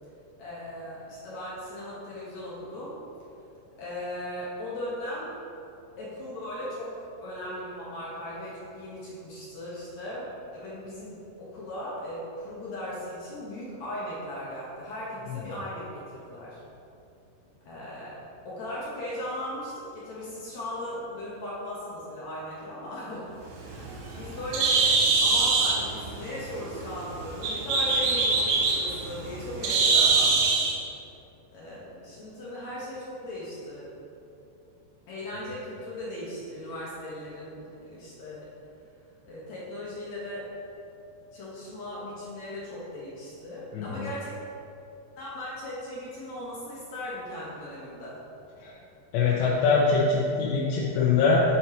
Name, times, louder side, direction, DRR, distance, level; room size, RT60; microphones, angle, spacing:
voice 1, 0.4-3.0 3.8-5.3 6.0-16.6 17.7-18.2 18.5-30.5 31.5-33.9 35.1-37.6 37.9-38.5 39.2-40.5 41.3-44.4 45.2-48.2, left 1 dB, 65° left, -7 dB, 1.8 m, -38 dB
Bird, 23.5-30.8, right 4 dB, 75° right, 2.7 m, -24 dB
voice 2, 43.7-44.0 48.6-48.7 49.1-51.4, left 4 dB, 85° left, -5 dB, 3.0 m, -23 dB
8.9 x 4.4 x 4.3 m, 2.7 s
omnidirectional pair, 4.9 m